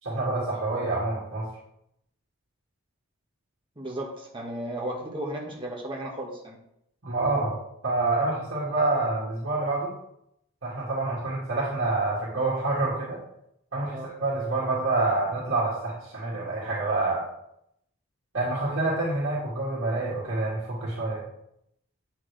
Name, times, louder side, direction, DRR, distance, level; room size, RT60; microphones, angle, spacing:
voice 1, 0.0-1.5 7.0-7.6 7.8-9.9 10.6-13.2 13.7-17.2 18.3-21.2, right 2 dB, 65° right, -8 dB, 2.0 m, -27 dB
voice 2, 3.7-6.6 13.9-14.1, right 1 dB, 25° right, -2 dB, 1.5 m, -34 dB
8.4 x 5.9 x 3.4 m, 0.78 s
head